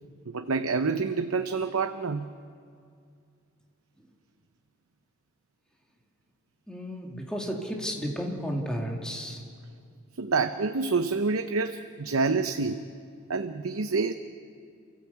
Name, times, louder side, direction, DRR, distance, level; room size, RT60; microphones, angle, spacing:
voice 1, 0.3-2.3 10.2-12.8 13.3-14.1, right 4 dB, 80° right, 8 dB, 0.7 m, -27 dB
voice 2, 6.7-9.4, equal, 5° left, -1 dB, 2.5 m, -33 dB
28.5 x 14.5 x 8.2 m, 2.3 s
head